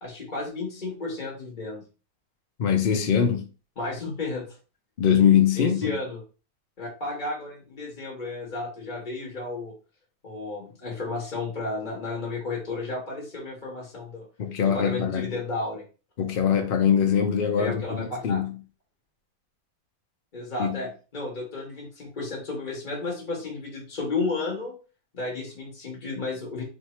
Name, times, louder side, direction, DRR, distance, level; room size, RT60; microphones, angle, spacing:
voice 1, 0.0-1.8 3.8-4.4 5.6-6.2 6.8-9.7 10.2-14.3 14.6-15.8 17.6-18.4 20.3-24.8 25.1-26.6, left 3 dB, 30° left, 1.2 m, -32 dB
voice 2, 2.6-3.5 5.0-6.0 14.4-15.3 16.2-18.6 20.6-20.8, left 8 dB, 70° left, 0.5 m, -22 dB
3.2 x 2.7 x 4.3 m
omnidirectional pair, 1.8 m